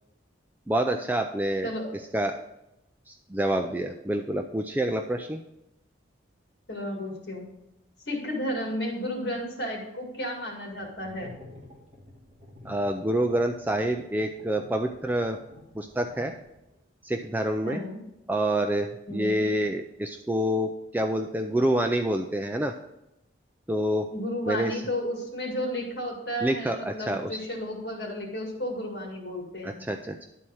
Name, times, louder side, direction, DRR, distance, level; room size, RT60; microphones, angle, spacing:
voice 1, 0.7-1.7 2.1-2.4 3.1-5.4 12.6-15.4 15.7-16.3 17.0-17.8 18.3-22.7 23.7-24.1 24.5-24.8 26.4-27.4 29.6-30.3, right 1 dB, 10° right, 4 dB, 0.3 m, -27 dB
voice 2, 1.6-2.0 6.7-7.4 8.1-11.4 17.6-18.0 19.1-19.4 24.1-29.8, equal, 60° left, 0 dB, 2.0 m, -33 dB
sound 1, 10.7-16.8, left 2 dB, 35° right, 2.2 m, -50 dB
11.0 x 4.3 x 6.2 m, 0.86 s
head